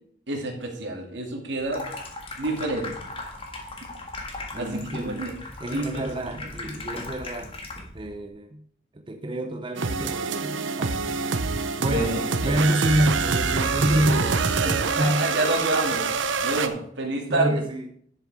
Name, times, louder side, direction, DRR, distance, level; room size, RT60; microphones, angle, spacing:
voice 1, 0.3-1.8 2.4-2.9 4.5-5.3 5.7-6.5 11.8-12.7 14.6-16.0 16.4-17.6, right 2 dB, 65° right, 2.4 m, -28 dB
Water tap faucet / Sink (filling or washing), 1.6-8.1, left 2 dB, 30° left, 1.7 m, -38 dB
voice 2, 4.5-5.3 5.6-7.5 7.9-8.6 8.9-11.2 11.8-14.4 14.8-15.3 17.3-17.9, right 1 dB, 25° right, 0.5 m, -28 dB
sound 1, 9.8-16.7, right 4 dB, 80° right, 0.8 m, -25 dB
10.5 x 7.2 x 4.8 m
head